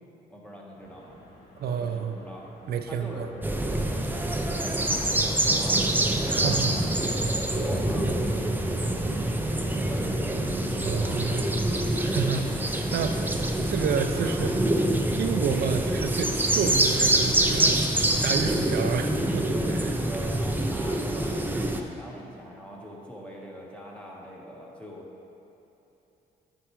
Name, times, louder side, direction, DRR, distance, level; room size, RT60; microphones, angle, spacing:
voice 1, 0.3-1.2 1.6-2.4 2.9-3.3 3.7-4.3 4.6-5.8 6.2-10.2 10.9-11.4 19.4-19.8 20.0-25.1, equal, 5° left, -3 dB, 1.3 m, -42 dB
sound 1, 0.8-13.5, equal, 60° left, 1.4 m, -46 dB
voice 2, 1.6-2.2 2.7-3.3 6.3-6.7 10.7-11.4 12.0-14.7 15.1-17.8 18.2-19.9, right 6 dB, 70° right, 6 dB, 0.5 m, -30 dB
sound 2, 3.4-21.8, right 1 dB, 10° right, 0.5 m, -26 dB
9.8 x 4.6 x 3.1 m, 3.0 s
cardioid pair, 75°, 17 cm